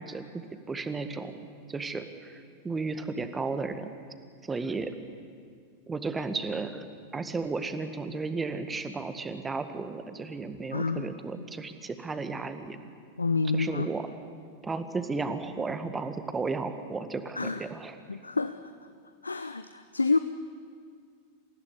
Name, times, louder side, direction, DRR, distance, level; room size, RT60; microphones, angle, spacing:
voice 1, 0.0-1.4 1.7-3.9 4.4-4.9 5.9-6.8 7.1-12.8 13.5-14.1 14.6-18.0, right 4 dB, 15° right, 9 dB, 1.8 m, -34 dB
voice 2, 10.7-11.2 13.2-13.9 17.3-17.6 18.1-18.7 19.2-20.2, left 4 dB, 80° left, 11 dB, 0.7 m, -28 dB
27.5 x 15.5 x 9.9 m, 2.1 s
figure-of-eight pair, 90°, 0 cm